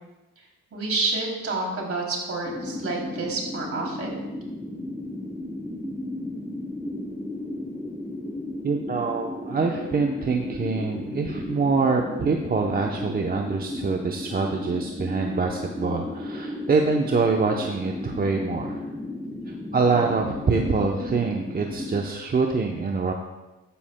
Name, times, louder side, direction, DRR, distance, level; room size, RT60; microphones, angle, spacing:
voice 1, 0.7-4.2, right 3 dB, 50° right, -1 dB, 3.0 m, -29 dB
sound 1, 2.4-22.0, left 1 dB, 5° left, 0.9 m, -34 dB
voice 2, 8.6-18.8 19.5-23.1, right 4 dB, 30° right, 2 dB, 0.8 m, -25 dB
13.0 x 10.0 x 2.2 m, 1.1 s
cardioid pair, 90°, 30 cm